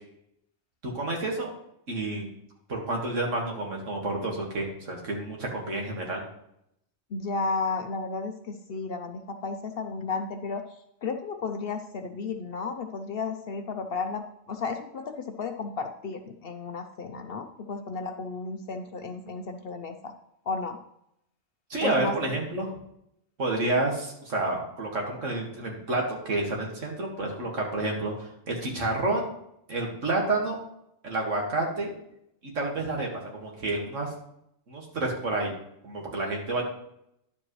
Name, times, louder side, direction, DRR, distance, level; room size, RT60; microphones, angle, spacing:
voice 1, 0.8-1.5 1.9-2.3 2.7-6.2 21.7-22.7 23.4-29.3 29.7-30.6 31.0-31.9 32.5-34.1 34.7-35.5 35.8-36.6, right 2 dB, 70° right, -1 dB, 2.2 m, -29 dB
voice 2, 7.1-10.6 11.0-20.1 20.5-20.8 21.8-22.4, left 4 dB, 55° left, 6 dB, 0.8 m, -33 dB
10.5 x 7.5 x 3.1 m, 0.77 s
omnidirectional pair, 1.3 m